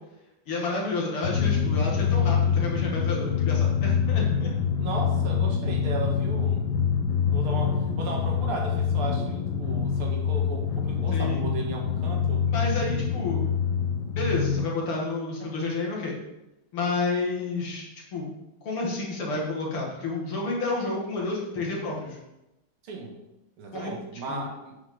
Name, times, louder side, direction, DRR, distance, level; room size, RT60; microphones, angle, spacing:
voice 1, 0.5-4.5 11.1-11.4 12.5-13.4 14.1-16.2 16.7-17.9 18.1-18.3 18.6-22.2 23.7-23.9 24.3-24.4, left 3 dB, 90° left, -3 dB, 3.1 m, -30 dB
Drum, 1.2-14.7, left 7 dB, 60° left, 1.3 m, -25 dB
voice 2, 4.8-6.6 7.3-12.4 22.8-23.2 23.6-24.7, right 3 dB, 85° right, 0 dB, 2.5 m, -35 dB
9.5 x 7.2 x 3.9 m, 0.93 s
omnidirectional pair, 2.3 m